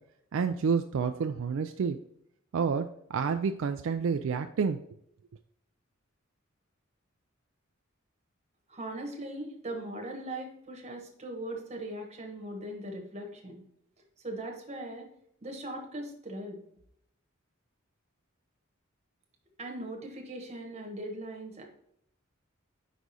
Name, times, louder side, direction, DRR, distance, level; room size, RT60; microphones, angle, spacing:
voice 1, 0.3-2.0 2.5-4.8, right 5 dB, 70° right, 7 dB, 0.4 m, -29 dB
voice 2, 8.7-13.6 14.2-15.1 15.4-16.6 19.6-21.6, right 1 dB, 35° right, 2 dB, 1.2 m, -39 dB
5.1 x 4.7 x 4.1 m, 0.71 s
head